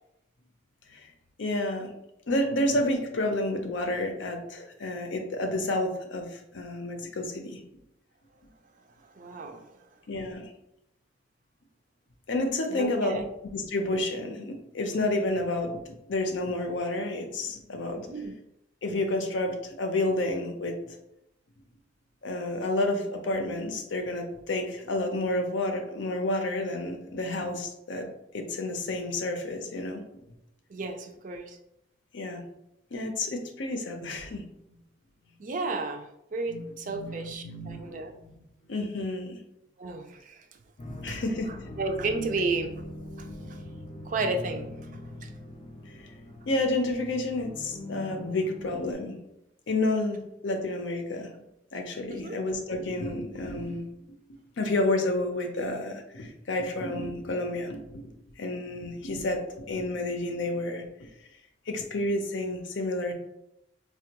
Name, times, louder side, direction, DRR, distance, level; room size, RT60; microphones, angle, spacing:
voice 1, 1.4-1.9 2.3-7.6 10.1-10.4 12.3-13.2 13.5-15.8 16.1-18.1 18.8-21.0 22.2-28.1 28.3-30.0 32.1-32.4 32.9-34.5 36.5-36.7 36.9-39.4 41.0-41.5 46.5-49.2 49.7-51.3 51.7-53.9 54.6-58.1 58.4-59.4 59.7-61.1 61.7-63.1, left 2 dB, 75° left, 4 dB, 0.6 m, -30 dB
voice 2, 9.2-9.8 12.7-13.3 17.9-18.3 30.7-31.6 35.4-38.1 39.8-40.4 41.1-41.2 41.8-42.7 43.2-43.6 44.0-45.3 52.1-52.4, right 3 dB, 45° right, 5 dB, 0.4 m, -33 dB
sound 1, 40.8-48.9, left 1 dB, 35° left, 0.4 m, -41 dB
4.3 x 2.3 x 2.8 m, 0.83 s
head